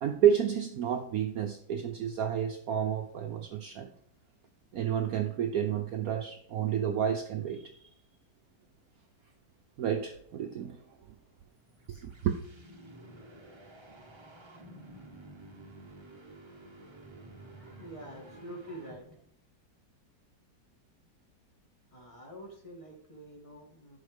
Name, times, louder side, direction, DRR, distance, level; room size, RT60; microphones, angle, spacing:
voice 1, 0.0-3.9 4.7-7.9 9.8-10.8 11.9-12.4, right 9 dB, 65° right, 5 dB, 1.0 m, -30 dB
sound 1, 11.5-19.3, right 1 dB, 25° right, 0.7 m, -51 dB
voice 2, 17.4-19.2 21.9-24.0, right 1 dB, 15° left, -1 dB, 2.2 m, -47 dB
11.0 x 5.2 x 5.3 m, 0.64 s
omnidirectional pair, 2.0 m